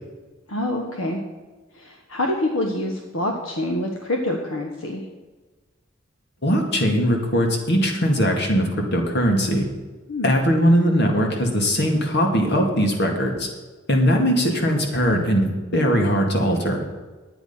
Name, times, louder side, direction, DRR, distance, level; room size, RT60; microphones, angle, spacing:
voice 1, 0.5-1.2 1.8-5.0 10.1-10.3, left 1 dB, 75° left, 2 dB, 1.1 m, -26 dB
voice 2, 6.4-9.7 10.2-13.5 13.9-16.8, equal, 60° left, 2 dB, 2.1 m, -20 dB
10.5 x 9.1 x 5.6 m, 1.3 s
head